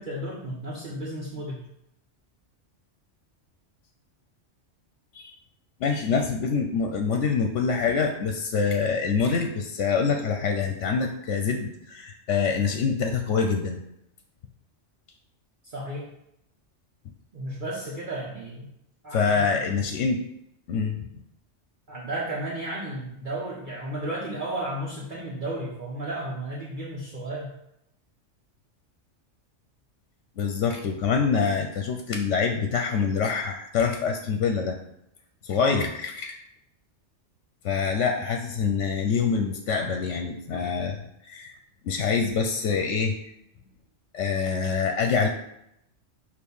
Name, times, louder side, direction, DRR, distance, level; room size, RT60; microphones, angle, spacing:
voice 1, 0.0-1.6 15.6-16.1 17.3-18.7 19.0-19.3 21.9-27.5 35.6-35.8, right 1 dB, 45° right, -5 dB, 1.1 m, -33 dB
voice 2, 5.8-13.8 19.1-20.3 20.7-21.1 30.4-34.8 35.4-36.4 37.6-41.6 41.8-43.1 44.1-45.3, left 5 dB, 80° left, 4 dB, 0.9 m, -25 dB
6.5 x 2.7 x 5.4 m, 0.79 s
omnidirectional pair, 1.2 m